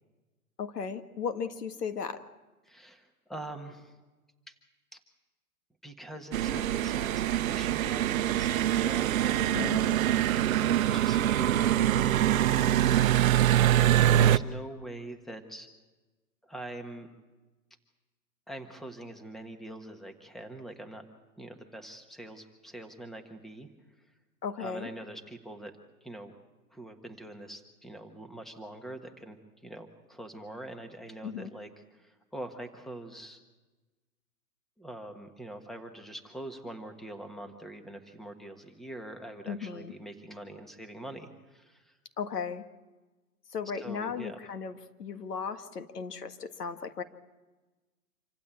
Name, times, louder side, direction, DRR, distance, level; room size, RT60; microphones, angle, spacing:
voice 1, 0.6-2.2 9.5-10.0 24.4-24.9 31.2-31.5 39.5-39.9 42.2-42.6 43.5-47.0, left 6 dB, 80° left, 8 dB, 1.8 m, -36 dB
voice 2, 2.6-4.0 4.5-4.6 4.9-5.0 5.8-10.0 10.7-12.1 14.0-15.7 16.4-17.1 18.5-21.0 21.4-23.7 24.6-25.7 26.0-26.3 26.7-29.4 29.6-33.4 34.8-42.0 43.8-44.4, right 1 dB, ahead, 6 dB, 1.4 m, -44 dB
sound 1, 6.3-14.4, right 12 dB, 60° right, 0.8 m, -24 dB
27.0 x 15.5 x 8.6 m, 1.2 s
hypercardioid pair, 130°, 46 cm